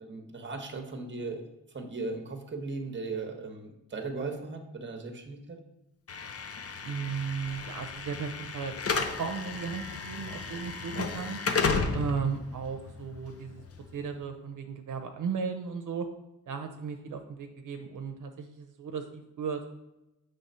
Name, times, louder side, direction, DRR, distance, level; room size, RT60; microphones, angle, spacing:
voice 1, 0.0-5.6, right 3 dB, 35° right, 5 dB, 1.0 m, -37 dB
Slam / Alarm, 6.1-14.2, left 4 dB, 50° left, 0.7 m, -34 dB
voice 2, 6.8-11.4 11.9-13.6 13.9-16.1 16.5-19.7, right 6 dB, 75° right, 5 dB, 0.7 m, -35 dB
7.1 x 3.4 x 5.5 m, 0.92 s
wide cardioid pair, 120°, 31 cm